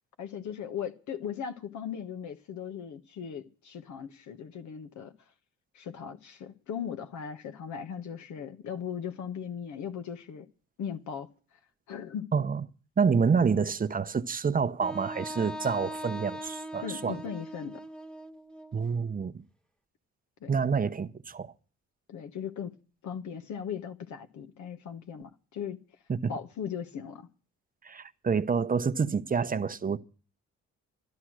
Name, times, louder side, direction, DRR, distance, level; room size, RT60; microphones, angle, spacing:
voice 1, 0.2-5.1 5.7-10.5 10.8-11.3 11.9-12.3 16.8-17.8 20.4-20.5 22.1-22.7 23.0-25.8 26.3-27.3, left 8 dB, 70° left, 1.2 m, -38 dB
voice 2, 12.3-12.6 13.0-17.2 18.7-19.4 20.5-21.5 26.1-26.3 27.8-30.0, right 5 dB, 30° right, 0.8 m, -28 dB
Wind instrument woodwind instrument, 14.8-18.8, equal, 5° left, 0.8 m, -40 dB
13.0 x 12.0 x 6.3 m
cardioid pair, 90°, 30 cm